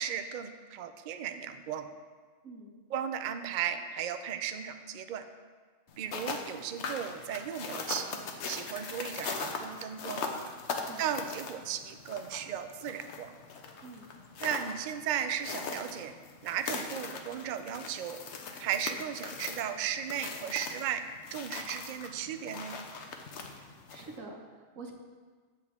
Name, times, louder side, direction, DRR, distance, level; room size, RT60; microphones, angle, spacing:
voice 1, 0.0-1.9 2.9-5.3 6.0-8.2 8.5-10.3 11.0-13.3 14.4-16.1 16.4-18.2 18.6-21.0 21.3-22.8, right 9 dB, 65° right, 8 dB, 0.5 m, -35 dB
sound 1, 5.9-24.2, left 4 dB, 65° left, 1.0 m, -41 dB
voice 2, 10.7-11.0 13.8-14.1 23.9-24.9, right 3 dB, 90° right, 2 dB, 1.4 m, -46 dB
7.9 x 7.6 x 3.6 m, 1.5 s
omnidirectional pair, 1.3 m